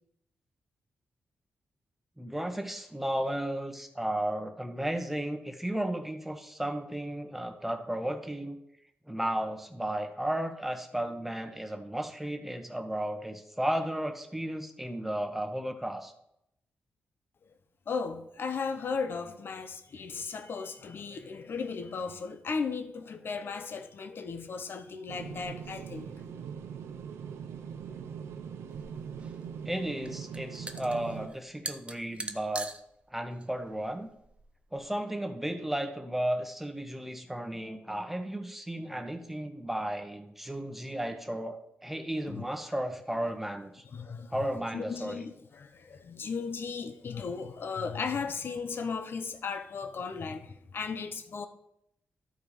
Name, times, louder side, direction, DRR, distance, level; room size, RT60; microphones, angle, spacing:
voice 1, 2.2-8.6 9.1-16.1 29.6-32.7 33.1-34.1 34.7-43.8 44.3-45.3, right 1 dB, 5° right, 1.3 m, -34 dB
voice 2, 17.9-26.1 42.3-42.4 43.9-44.5 44.7-51.5, left 5 dB, 60° left, 0.9 m, -36 dB
sound 1, 25.1-31.3, right 7 dB, 85° right, 0.6 m, -41 dB
sound 2, 28.7-34.9, right 2 dB, 25° right, 0.8 m, -44 dB
12.5 x 4.6 x 5.1 m
cardioid pair, 60°, 4 cm